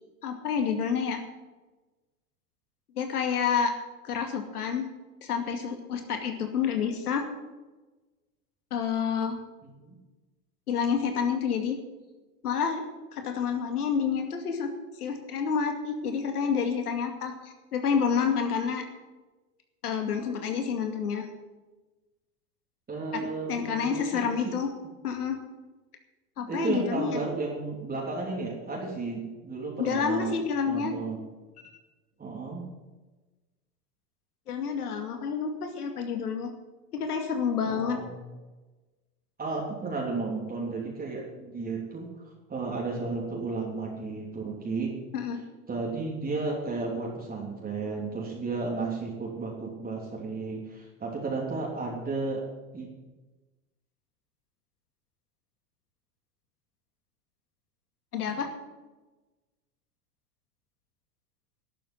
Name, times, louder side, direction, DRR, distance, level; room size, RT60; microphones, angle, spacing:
voice 1, 0.2-1.2 3.0-3.7 4.0-4.9 5.2-7.3 8.7-9.4 10.7-11.8 12.4-12.8 13.1-14.7 15.0-18.8 19.8-21.3 23.1-24.7 25.0-25.4 26.4-27.2 29.8-30.9 34.5-36.5 36.9-38.0 45.1-45.4 58.1-58.5, left 6 dB, 90° left, 5 dB, 2.4 m, -29 dB
voice 2, 9.6-10.0 22.9-24.5 26.5-30.4 30.7-31.2 32.2-32.6 37.6-38.2 39.4-42.1 42.5-44.9 45.7-52.4 52.7-52.9, right 3 dB, 20° right, -3 dB, 3.2 m, -33 dB
12.0 x 7.6 x 9.6 m, 1.2 s
hypercardioid pair, 110°, 44 cm